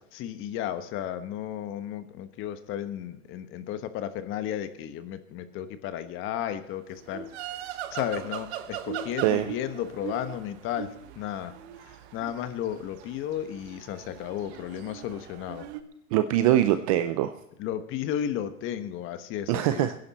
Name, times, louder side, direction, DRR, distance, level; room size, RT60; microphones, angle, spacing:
voice 1, 0.1-11.5 11.8-15.7 17.6-19.9, left 10 dB, 25° left, 10 dB, 1.2 m, -34 dB
sound 1, 7.0-15.8, right 10 dB, 45° right, 1.4 m, -40 dB
voice 2, 16.1-17.4 19.5-19.9, right 12 dB, 25° right, 11 dB, 0.4 m, -23 dB
21.0 x 10.5 x 4.2 m, 0.83 s
hypercardioid pair, 135°, 45 cm